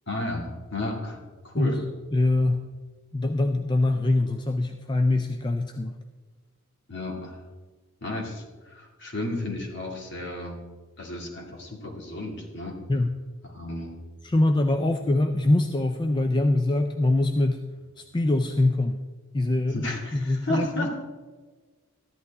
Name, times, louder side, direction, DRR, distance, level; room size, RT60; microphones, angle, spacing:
voice 1, 0.1-1.8 6.9-7.4 8.0-10.6 11.0-12.8 13.4-14.0 19.7-20.9, left 1 dB, 50° left, 0 dB, 2.4 m, -33 dB
voice 2, 2.1-2.6 3.1-6.0 12.9-13.1 14.2-17.6 18.0-19.0 19.3-20.9, left 2 dB, 20° left, 7 dB, 0.4 m, -23 dB
14.0 x 11.0 x 3.6 m, 1.4 s
head